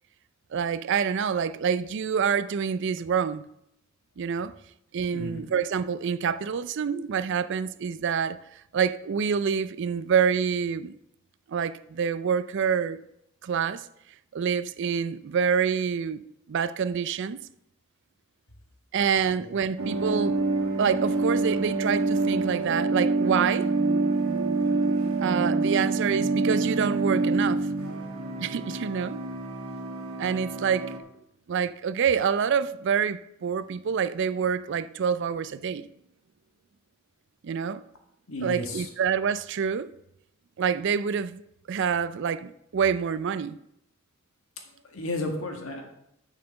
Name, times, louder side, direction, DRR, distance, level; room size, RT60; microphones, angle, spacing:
voice 1, 0.5-3.5 4.2-4.5 4.9-8.4 8.7-10.9 11.5-13.0 13.4-13.9 14.3-16.2 16.5-17.4 18.9-20.4 20.8-23.7 25.2-27.7 28.4-29.2 30.2-30.9 31.5-35.9 37.4-37.8 38.4-39.9 40.6-41.4 41.7-43.6, right 7 dB, 55° right, 0.4 m, -27 dB
voice 2, 5.1-5.4 19.2-19.5 38.3-38.9 44.7-45.8, left 1 dB, 75° left, 1.8 m, -34 dB
sound 1, 19.8-31.0, right 3 dB, 85° right, 1.3 m, -26 dB
6.6 x 6.5 x 6.7 m
head